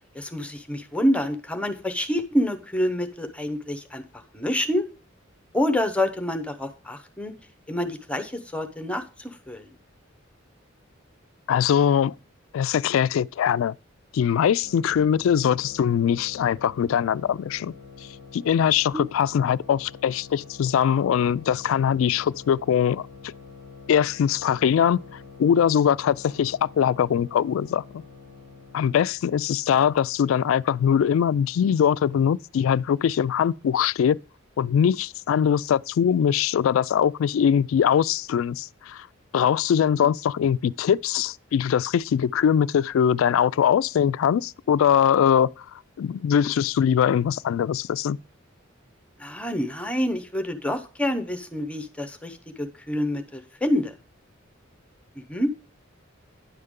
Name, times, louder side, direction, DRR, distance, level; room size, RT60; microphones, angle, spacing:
voice 1, 0.1-4.9 5.5-7.3 7.7-9.7 18.9-19.0 40.0-40.1 49.2-53.9 55.3-55.5, left 1 dB, 5° left, 0.7 m, -27 dB
voice 2, 11.5-12.1 12.5-13.7 14.1-17.7 18.3-23.0 23.9-25.0 25.4-27.8 28.7-34.2 34.6-39.1 39.3-45.6 46.0-48.2, left 8 dB, 80° left, 0.3 m, -22 dB
sound 1, 14.6-29.2, left 4 dB, 70° right, 3.5 m, -46 dB
10.0 x 6.6 x 3.6 m
head